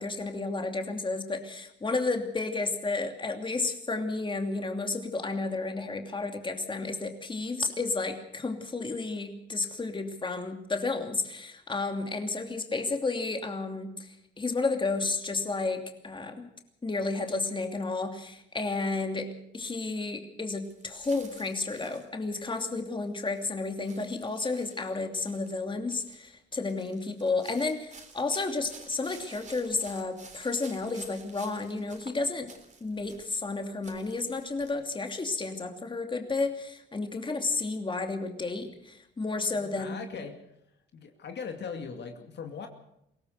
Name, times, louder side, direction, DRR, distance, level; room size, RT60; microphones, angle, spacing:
voice 1, 0.0-14.0 14.4-16.5 16.8-32.5 32.8-40.0, left 3 dB, 25° left, 5 dB, 2.8 m, -32 dB
sound 1, 20.6-22.6 23.0-23.5 23.8-25.6 25.9-26.3 26.7-33.5 33.8-34.7, right 4 dB, 40° right, 3.7 m, -52 dB
voice 2, 39.7-40.4 40.9-42.7, left 6 dB, 60° left, 5 dB, 2.4 m, -39 dB
22.5 x 18.0 x 6.7 m, 0.80 s
cardioid pair, 90°, 20 cm